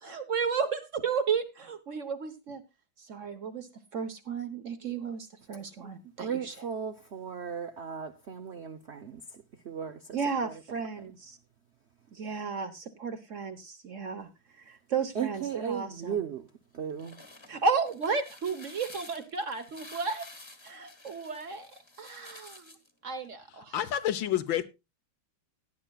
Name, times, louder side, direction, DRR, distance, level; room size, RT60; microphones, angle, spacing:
voice 1, 0.0-2.6 3.1-3.7 3.9-6.5 10.1-11.4 12.1-14.3 14.7-16.2 17.5-20.3 20.6-21.7 22.0-22.7 23.0-23.7, right 5 dB, 45° right, 1.3 m, -33 dB
voice 2, 6.2-9.2 9.6-10.2 10.4-10.5 15.1-16.5 16.7-17.2, right 7 dB, 65° right, 0.6 m, -36 dB
sound 1, 16.8-22.9, left 2 dB, 15° left, 1.2 m, -50 dB
voice 3, 23.7-24.6, left 11 dB, 75° left, 1.7 m, -28 dB
17.0 x 10.5 x 2.3 m
omnidirectional pair, 2.1 m